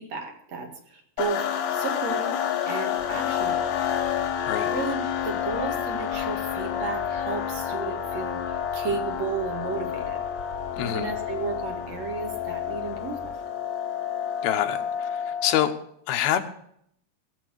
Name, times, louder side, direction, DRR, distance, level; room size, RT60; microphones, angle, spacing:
voice 1, 0.0-1.4 1.7-2.3 2.7-3.7 4.7-10.2 10.8-13.2, right 5 dB, 50° right, 3 dB, 2.7 m, -33 dB
sound 1, 1.2-15.7, left 9 dB, 65° left, 2.0 m, -29 dB
sound 2, 3.0-13.4, left 4 dB, 20° left, 5.5 m, -46 dB
voice 2, 10.8-11.1 14.4-15.7 16.1-16.4, left 11 dB, 80° left, 7 dB, 2.8 m, -26 dB
17.5 x 6.8 x 6.3 m, 0.68 s
omnidirectional pair, 4.4 m